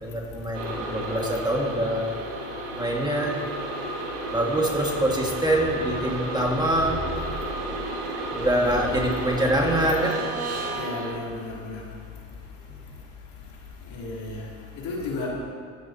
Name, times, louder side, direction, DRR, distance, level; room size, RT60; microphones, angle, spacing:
voice 1, 0.0-2.1 2.7-3.4 4.3-7.2 7.7-7.8 8.3-10.2 12.7-12.8, right 1 dB, 10° right, 0 dB, 1.9 m, -25 dB
sound 1, 0.5-11.1, right 2 dB, 75° right, 2.4 m, -32 dB
voice 2, 8.6-8.9 10.7-11.8 13.9-14.4 14.8-15.3, left 3 dB, 65° left, -4 dB, 3.3 m, -33 dB
20.5 x 9.1 x 2.9 m, 2.1 s
supercardioid pair, 80°, 38 cm